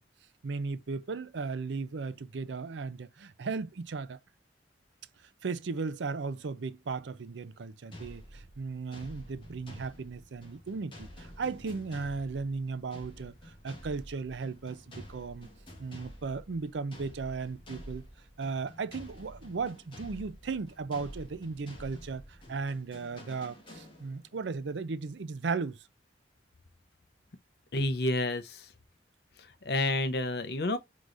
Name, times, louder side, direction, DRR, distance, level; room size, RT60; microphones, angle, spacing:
voice 1, 0.4-4.2 5.4-15.5 15.8-18.1 18.4-22.2 22.5-25.8, right 4 dB, 80° right, 0.5 m, -36 dB
sound 1, 7.9-24.4, equal, 30° left, 1.6 m, -49 dB
voice 2, 27.7-28.6 29.6-30.8, left 2 dB, 60° left, 0.7 m, -29 dB
4.7 x 3.9 x 2.5 m
head